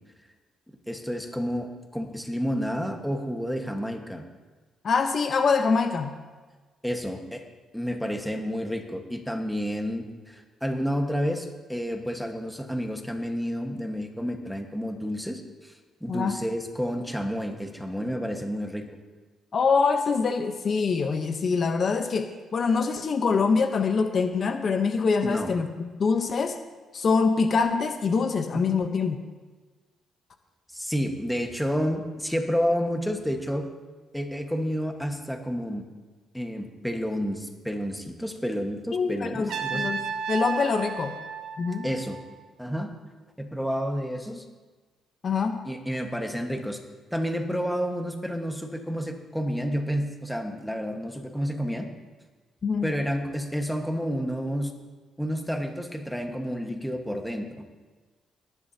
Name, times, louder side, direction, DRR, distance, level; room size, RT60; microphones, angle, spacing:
voice 1, 0.9-4.2 6.8-7.4 7.7-15.7 16.0-18.9 25.2-25.5 28.5-28.9 30.7-33.7 34.1-35.8 36.3-40.0 41.8-42.2 42.6-42.9 43.4-44.4 45.6-46.8 47.1-51.9 52.8-54.7 55.2-57.5, equal, ahead, 4 dB, 1.4 m, -30 dB
voice 2, 4.8-6.1 16.1-16.4 19.5-26.6 26.9-29.2 38.9-40.0 40.3-41.2 41.6-41.9 45.2-45.6 52.6-52.9, left 5 dB, 50° left, 6 dB, 0.9 m, -24 dB
Trumpet, 39.5-42.5, right 5 dB, 75° right, 1.2 m, -33 dB
18.5 x 10.5 x 2.8 m, 1.3 s
cardioid pair, 90°, 0 cm